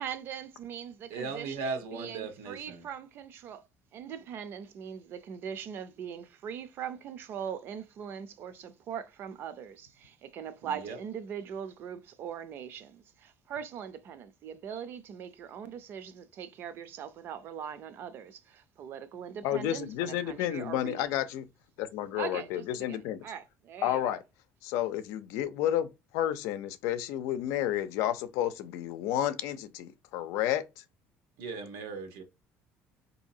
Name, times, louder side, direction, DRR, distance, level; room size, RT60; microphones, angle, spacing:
voice 1, 0.0-3.6 3.9-21.1 22.1-24.2, right 8 dB, 50° right, 0.5 m, -41 dB
voice 2, 1.1-2.8 10.6-11.0 31.4-32.2, right 4 dB, 85° right, 1.0 m, -37 dB
voice 3, 19.4-21.5 21.8-23.2 23.8-24.2 24.6-25.9 26.1-30.6, left 12 dB, 85° left, 0.5 m, -31 dB
4.0 x 2.8 x 2.7 m
cardioid pair, 150°, 5 cm